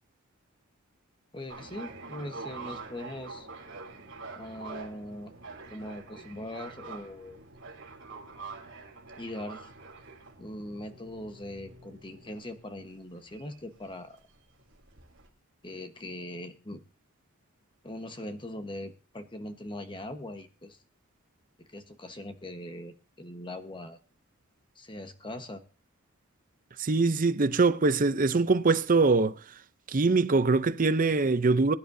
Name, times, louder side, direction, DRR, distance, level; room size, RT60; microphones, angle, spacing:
voice 1, 1.3-3.5 4.3-5.3 5.7-7.4 9.1-9.7 10.4-14.2 15.6-16.8 17.8-20.8 21.7-24.0 24.7-25.6, left 1 dB, 25° left, 1.2 m, -41 dB
sound 1, 1.5-15.3, right 4 dB, 60° right, 3.1 m, -46 dB
voice 2, 26.8-29.4 29.9-31.7, right 3 dB, 40° right, 0.6 m, -23 dB
21.5 x 10.5 x 2.7 m
head